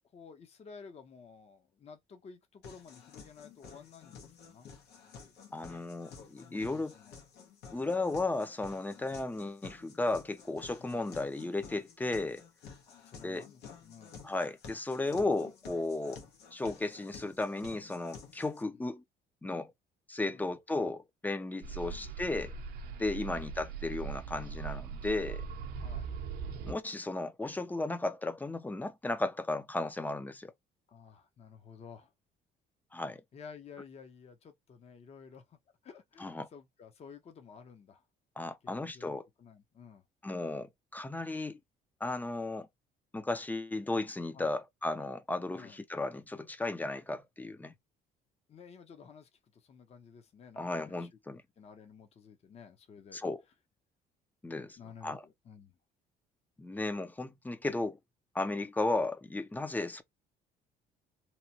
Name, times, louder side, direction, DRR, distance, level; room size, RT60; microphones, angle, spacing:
voice 1, 0.1-4.7 6.4-7.2 7.8-8.0 10.8-11.0 12.9-14.1 16.1-16.3 18.7-18.9 20.3-20.5 21.8-22.1 25.8-26.1 30.9-32.1 33.3-35.6 35.8-38.0 38.6-40.0 44.3-44.5 45.5-45.8 48.5-51.1 51.6-53.2 54.8-55.7, left 6 dB, 40° left, 0.7 m, -53 dB
sound 1, 2.6-18.6, left 5 dB, 75° left, 1.1 m, -52 dB
voice 2, 5.5-6.9 7.7-12.4 13.2-13.4 14.2-16.2 16.5-19.0 19.4-19.7 20.1-22.5 23.0-25.4 26.6-30.5 32.9-33.2 36.2-36.5 38.4-39.3 40.2-41.6 42.0-42.7 43.1-47.7 50.6-51.4 53.1-53.4 54.4-55.2 56.6-58.0 58.3-60.0, left 2 dB, 10° left, 0.4 m, -35 dB
sound 2, 21.6-26.7, right 6 dB, 65° right, 0.6 m, -40 dB
2.9 x 2.2 x 2.8 m
cardioid pair, 110°, 17 cm